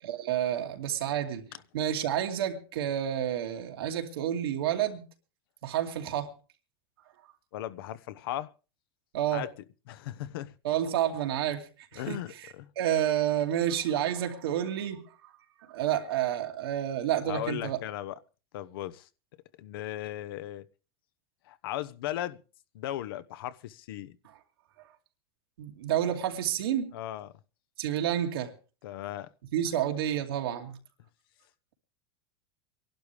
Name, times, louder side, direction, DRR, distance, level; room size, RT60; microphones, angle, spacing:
voice 1, 0.0-1.5 1.7-5.0 5.6-6.3 9.1-9.4 10.6-12.2 12.8-15.1 15.7-17.8 25.6-26.9 27.8-28.5 29.5-30.8, right 11 dB, 90° right, 2.5 m, -29 dB
voice 2, 7.5-8.5 9.3-9.5 9.9-10.5 12.0-12.7 17.3-18.2 18.5-19.1 19.6-20.6 21.5-22.4 22.7-24.2 26.9-27.3 28.8-29.3, left 13 dB, 75° left, 1.0 m, -37 dB
25.0 x 11.5 x 3.4 m
supercardioid pair, 135°, 12 cm